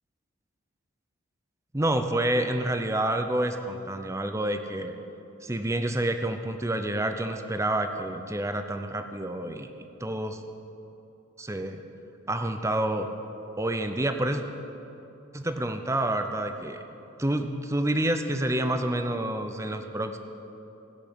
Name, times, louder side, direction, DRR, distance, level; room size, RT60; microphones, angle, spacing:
voice 1, 1.7-4.9 5.4-10.4 11.4-11.8 12.3-13.1 13.6-14.4 15.3-16.8 17.2-20.2, right 1 dB, 15° right, 7 dB, 0.6 m, -28 dB
17.5 x 6.1 x 8.5 m, 2.9 s
head